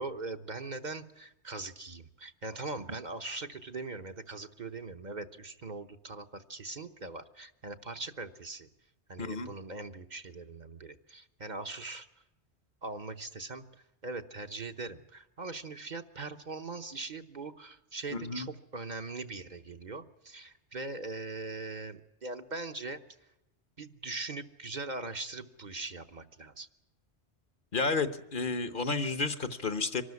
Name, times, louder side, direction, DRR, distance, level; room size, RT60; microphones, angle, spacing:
voice 1, 0.0-8.7 9.1-12.1 12.8-13.6 14.0-23.0 23.8-26.7, right 3 dB, 45° right, 7 dB, 1.0 m, -41 dB
voice 2, 9.2-9.5 18.1-18.5 27.7-30.0, left 4 dB, 50° left, 11 dB, 1.2 m, -31 dB
24.5 x 13.0 x 9.5 m, 0.90 s
omnidirectional pair, 1.1 m